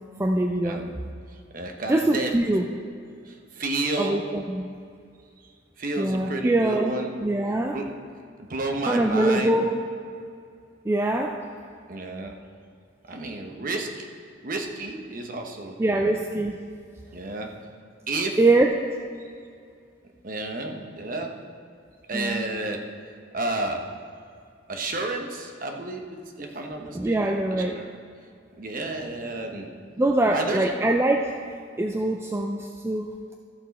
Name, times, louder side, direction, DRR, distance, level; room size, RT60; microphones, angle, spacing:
voice 1, 0.2-0.8 1.9-2.7 4.0-4.7 6.0-6.9 7.2-7.8 8.9-9.8 10.9-11.4 15.8-16.6 18.4-18.7 22.1-22.4 26.9-27.8 30.0-31.3 31.8-33.1, right 2 dB, 15° right, 3 dB, 0.3 m, -23 dB
voice 2, 1.3-2.3 3.2-4.2 5.4-7.1 7.7-7.9 8.5-9.6 11.9-12.4 13.1-13.9 14.4-16.1 17.1-17.5 18.1-18.4 20.2-21.3 22.1-22.8 23.3-23.8 24.7-26.0 26.4-27.9 28.6-29.7 30.3-30.7, right 2 dB, 45° right, 3 dB, 0.9 m, -31 dB
13.5 x 6.1 x 4.2 m, 2.3 s
head